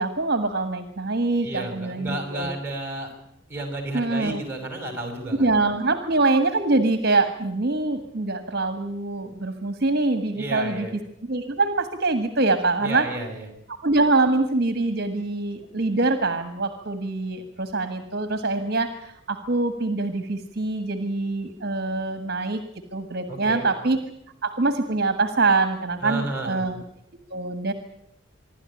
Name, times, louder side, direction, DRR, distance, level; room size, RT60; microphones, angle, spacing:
voice 1, 0.0-2.5 3.9-4.4 5.4-10.9 11.3-13.1 13.7-22.6 22.9-24.0 24.4-26.8 27.3-27.7, right 3 dB, 50° right, 9 dB, 1.6 m, -24 dB
voice 2, 1.4-3.1 3.5-5.5 10.3-10.9 12.8-13.5 23.3-23.7 26.0-26.6, right 2 dB, 10° right, 4 dB, 5.6 m, -32 dB
26.0 x 12.0 x 9.9 m, 0.75 s
head